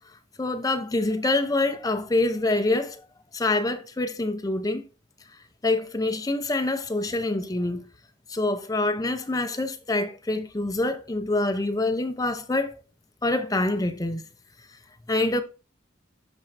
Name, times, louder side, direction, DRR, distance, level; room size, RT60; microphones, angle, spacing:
voice 1, 0.4-3.0 3.3-4.8 5.6-7.9 8.3-12.7 13.2-14.2 15.1-15.4, left 2 dB, 20° left, 0.6 m, -26 dB
12.0 x 4.4 x 2.6 m
head